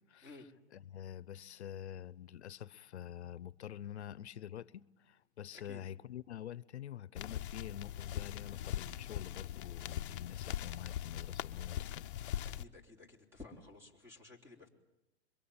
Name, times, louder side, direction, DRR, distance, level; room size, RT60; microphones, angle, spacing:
voice 1, 0.7-12.4, left 10 dB, 80° left, 1.0 m, -47 dB
sound 1, 7.1-12.6, left 11 dB, 55° left, 1.0 m, -41 dB
voice 2, 12.4-14.7, left 3 dB, 10° right, 4.0 m, -54 dB
26.5 x 23.5 x 8.9 m
hypercardioid pair, 155°, 33 cm